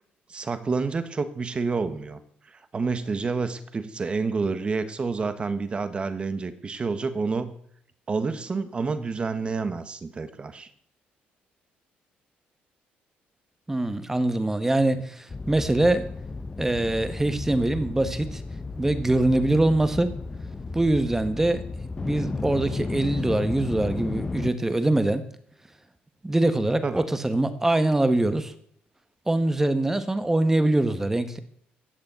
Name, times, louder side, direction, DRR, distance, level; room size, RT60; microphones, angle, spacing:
voice 1, 0.3-2.2 2.7-7.5 8.1-10.7 26.8-27.0, right 4 dB, 30° right, 11 dB, 1.4 m, -28 dB
voice 2, 13.7-16.0 16.6-18.4 18.8-20.1 20.7-21.6 22.0-25.2 26.2-28.5 29.3-31.4, right 2 dB, 10° right, 11 dB, 1.4 m, -23 dB
sound 1, 15.3-24.5, left 3 dB, 20° left, 0.9 m, -33 dB
15.0 x 6.9 x 9.3 m, 0.67 s
cardioid pair, 115°, 4 cm